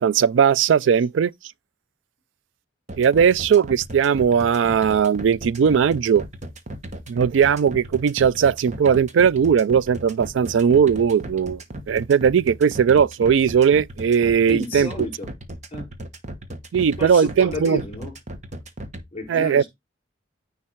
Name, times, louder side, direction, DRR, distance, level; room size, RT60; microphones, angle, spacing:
voice 1, 0.0-1.3 3.0-6.2 7.1-11.6 11.9-14.9 16.7-17.8 19.3-19.6, right 7 dB, 90° right, 0.4 m, -18 dB
sound 1, 2.9-19.0, right 1 dB, 40° right, 1.2 m, -36 dB
voice 2, 14.5-15.3 15.7-15.9 17.0-18.1 19.1-19.7, left 1 dB, 35° left, 5.9 m, -31 dB
9.8 x 3.4 x 4.4 m
head